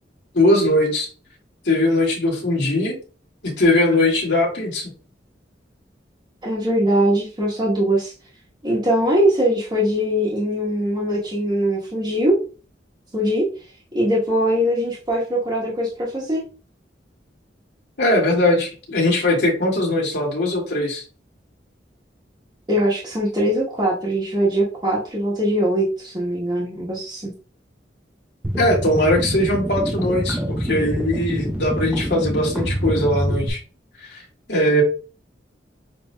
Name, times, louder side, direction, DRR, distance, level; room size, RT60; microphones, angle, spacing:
voice 1, 0.3-1.1 1.7-3.0 3.4-4.9 18.0-21.0 28.6-33.6 34.1-34.2 34.5-34.8, left 1 dB, 70° left, -2 dB, 2.0 m, -20 dB
voice 2, 6.4-8.1 8.6-12.4 13.1-13.4 13.9-16.4 22.7-27.3, equal, 25° right, -7 dB, 1.2 m, -21 dB
sound 1, 28.4-33.5, right 1 dB, 10° right, 0.5 m, -25 dB
7.2 x 2.8 x 2.2 m, 0.35 s
head